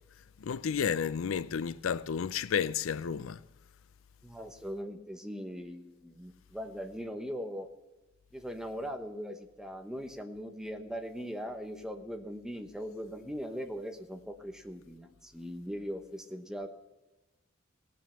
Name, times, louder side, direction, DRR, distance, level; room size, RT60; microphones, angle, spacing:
voice 1, 0.4-3.4, left 7 dB, 85° left, 0.4 m, -31 dB
voice 2, 4.2-7.7 8.3-16.7, equal, 5° right, 1.0 m, -40 dB
18.0 x 7.5 x 5.6 m
head